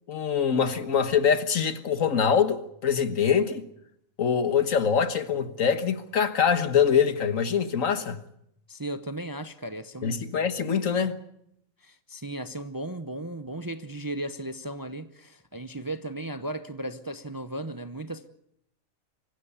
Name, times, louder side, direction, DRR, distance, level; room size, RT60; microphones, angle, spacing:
voice 1, 0.1-3.6 4.2-8.2 10.0-11.2, left 7 dB, 70° left, 1.7 m, -24 dB
voice 2, 8.7-10.4 11.8-18.3, right 1 dB, 20° right, 0.7 m, -36 dB
24.5 x 15.5 x 8.3 m
omnidirectional pair, 1.4 m